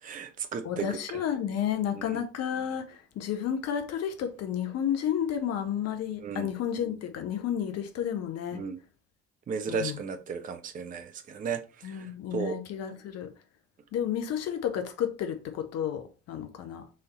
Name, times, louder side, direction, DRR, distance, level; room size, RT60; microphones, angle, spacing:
voice 1, 0.0-1.2 1.9-2.2 6.2-6.5 8.5-8.8 9.5-12.6, right 5 dB, 25° right, 0.5 m, -35 dB
voice 2, 0.6-8.6 9.7-10.0 11.8-13.3 13.9-16.9, left 9 dB, 45° left, 0.8 m, -31 dB
4.2 x 2.6 x 3.7 m
figure-of-eight pair, 50°, 35 cm